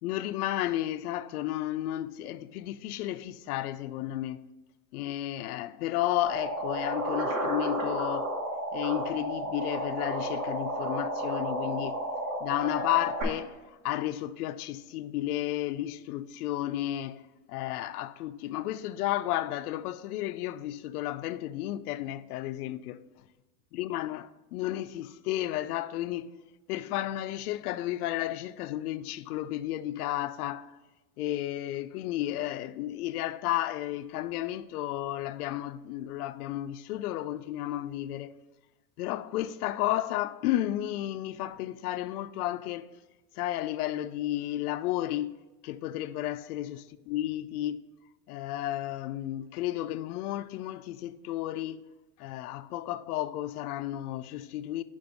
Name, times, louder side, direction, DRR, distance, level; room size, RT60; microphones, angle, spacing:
voice 1, 0.0-4.4 4.9-8.3 8.7-12.0 12.4-13.6 13.8-17.2 17.5-23.0 23.8-26.3 26.7-30.7 31.2-38.3 39.0-42.9 43.4-46.8 47.1-47.8 48.3-51.9 52.2-54.8, left 14 dB, 90° left, 0.5 m, -32 dB
sound 1, 6.2-13.2, right 1 dB, 65° right, 2.2 m, -32 dB
5.2 x 5.2 x 5.2 m
supercardioid pair, 175°, 44 cm